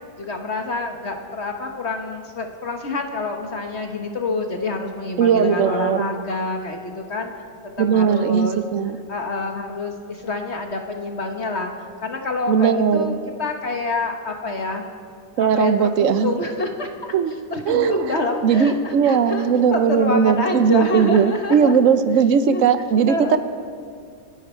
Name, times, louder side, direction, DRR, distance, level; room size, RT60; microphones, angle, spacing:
voice 1, 0.2-7.3 7.8-8.6 9.1-14.8 15.4-17.1 17.5-21.7 22.5-22.7 23.1-23.4, left 2 dB, 40° left, 4 dB, 1.4 m, -27 dB
voice 2, 5.2-6.1 7.8-9.0 12.5-13.1 15.4-16.4 17.1-17.3 17.7-18.1 18.4-23.4, right 7 dB, 60° right, 11 dB, 0.9 m, -18 dB
29.0 x 10.0 x 4.5 m, 2.4 s
omnidirectional pair, 2.0 m